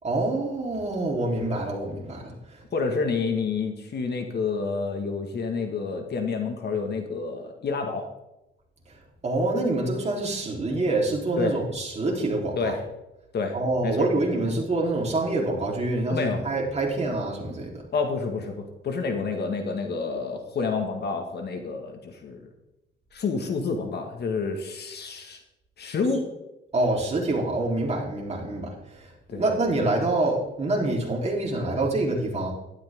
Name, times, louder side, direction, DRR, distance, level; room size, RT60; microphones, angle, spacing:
voice 1, 0.0-2.6 8.9-9.0 9.2-12.7 13.5-17.8 26.7-32.5, right 2 dB, 35° right, -1 dB, 4.0 m, -26 dB
voice 2, 2.7-8.1 11.4-11.6 12.6-12.8 13.3-13.6 13.8-14.1 16.1-16.4 17.9-22.5 23.1-25.4 25.8-26.3 29.3-29.5, left 4 dB, 55° left, 4 dB, 2.0 m, -29 dB
12.0 x 12.0 x 3.8 m, 0.90 s
cardioid pair, 90°, 20 cm